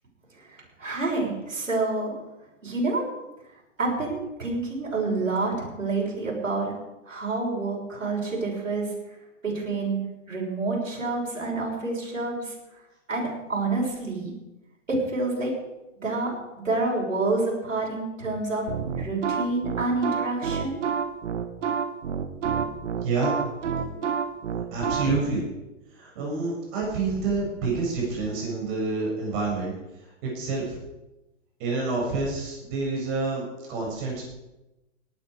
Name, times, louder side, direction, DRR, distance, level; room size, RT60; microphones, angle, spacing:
voice 1, 0.4-2.2 2.6-3.0 3.8-6.7 7.0-8.9 9.4-12.5 13.1-14.3 14.9-15.5 16.0-18.7 19.0-20.8, right 3 dB, 85° right, -4 dB, 6.6 m, -28 dB
sound 1, 18.7-25.2, right 7 dB, 65° right, 1.7 m, -28 dB
voice 2, 23.0-23.4 24.7-25.4 25.9-29.7 30.0-30.8 31.6-33.4 33.7-34.2, right 3 dB, 40° right, -2 dB, 7.4 m, -28 dB
18.5 x 11.5 x 5.1 m, 0.99 s
hypercardioid pair, 120°, 38 cm